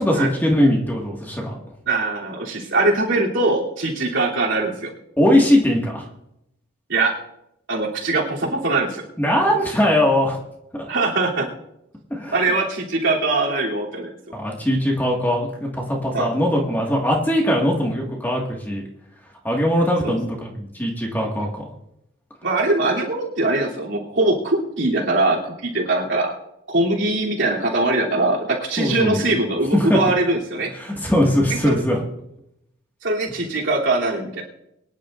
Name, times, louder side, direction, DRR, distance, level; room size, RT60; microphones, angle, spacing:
voice 1, 0.0-1.5 5.2-6.0 9.2-10.4 10.7-10.9 12.1-12.4 14.3-18.8 19.4-21.6 28.8-29.2 29.7-30.0 30.8-32.0, equal, 10° left, -1 dB, 1.8 m, -20 dB
voice 2, 1.9-4.9 6.9-7.1 7.7-9.0 10.9-11.5 12.3-14.1 16.1-16.3 20.0-20.1 22.4-26.3 26.7-30.7 31.6-31.8 33.0-34.4, right 2 dB, 70° right, -3 dB, 3.1 m, -21 dB
23.5 x 10.5 x 2.6 m, 0.83 s
head